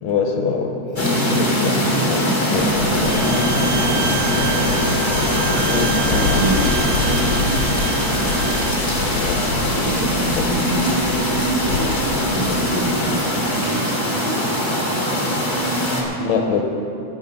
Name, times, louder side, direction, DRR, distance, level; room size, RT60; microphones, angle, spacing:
voice 1, 0.0-2.7 5.6-6.4 9.1-9.9 10.4-10.5 12.3-12.4 16.2-16.6, left 5 dB, 70° left, 3 dB, 2.0 m, -24 dB
sound 1, 1.0-16.0, equal, 15° left, 1.0 m, -21 dB
voice 2, 1.9-5.1 5.8-8.6 9.7-16.2, right 2 dB, 55° right, -5 dB, 1.3 m, -29 dB
Waves surf, 2.6-12.8, left 4 dB, 90° left, 2.6 m, -27 dB
Bowed string instrument, 3.0-8.8, right 10 dB, 80° right, 2.0 m, -29 dB
17.5 x 7.2 x 5.4 m, 2.6 s
omnidirectional pair, 3.6 m